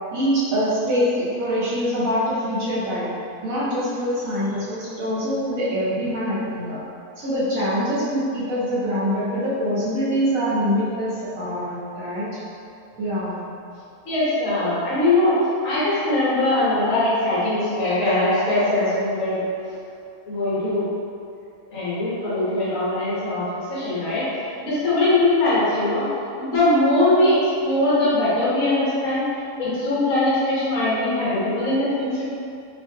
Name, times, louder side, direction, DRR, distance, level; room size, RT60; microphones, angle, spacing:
voice 1, 0.1-3.1 3.4-6.8 7.2-12.3 13.0-13.4, equal, 65° right, -9 dB, 1.1 m, -24 dB
voice 2, 14.0-15.4 15.6-19.4 20.2-20.9 21.7-24.3 24.6-26.0 26.4-27.4 27.6-29.2 29.6-32.2, left 2 dB, 60° left, -10 dB, 1.3 m, -21 dB
3.0 x 2.5 x 2.6 m, 2.4 s
omnidirectional pair, 1.6 m